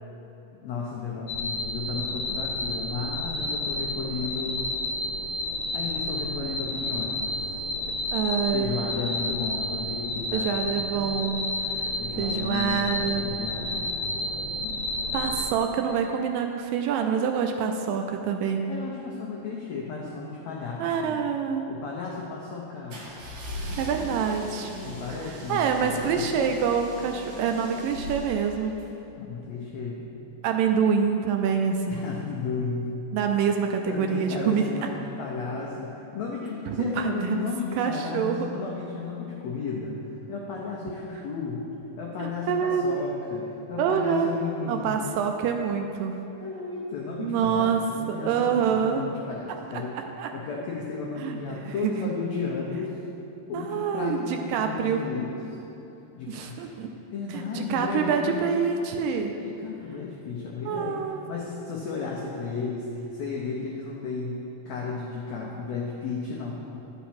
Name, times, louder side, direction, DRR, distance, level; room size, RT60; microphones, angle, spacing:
voice 1, 0.6-4.8 5.7-7.4 8.5-10.5 12.0-12.9 13.2-13.8 18.7-21.2 21.7-23.1 24.8-26.3 29.2-30.1 31.9-32.9 33.9-40.0 40.3-41.6 42.0-45.0 46.4-50.0 50.3-52.9 53.5-55.4 56.1-56.7 57.1-58.5 59.4-64.4 64.6-66.5, left 4 dB, 85° left, -3 dB, 1.5 m, -34 dB
sound 1, 1.3-15.5, left 1 dB, 70° left, 2.4 m, -31 dB
voice 2, 8.1-8.7 10.3-11.5 12.2-13.3 15.1-18.7 20.8-21.7 23.8-24.7 25.5-28.7 30.4-32.0 33.1-34.6 36.7-37.4 37.8-38.5 42.2-42.8 43.8-44.3 44.7-46.3 47.2-47.8 48.1-49.0 49.7-50.3 51.2-51.9 53.5-55.0 56.3-56.9 57.3-59.3 60.7-61.3, right 7 dB, 80° right, 4 dB, 2.1 m, -26 dB
sound 2, 22.9-28.9, equal, 65° right, 2.3 m, -39 dB
10.5 x 5.7 x 4.3 m, 3.0 s
omnidirectional pair, 4.1 m